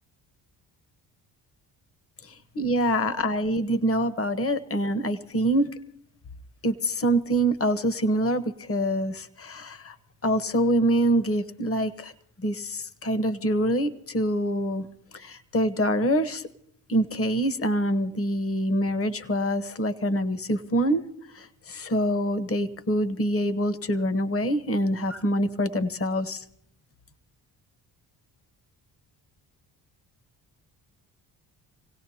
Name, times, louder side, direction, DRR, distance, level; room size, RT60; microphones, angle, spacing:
voice 1, 2.2-5.7 6.6-10.0 10.2-12.1 12.4-14.9 15.1-16.4 16.9-21.0 21.3-26.4, right 1 dB, 30° left, 13 dB, 1.1 m, -25 dB
27.0 x 17.0 x 2.9 m, 0.68 s
supercardioid pair, 60°, 46 cm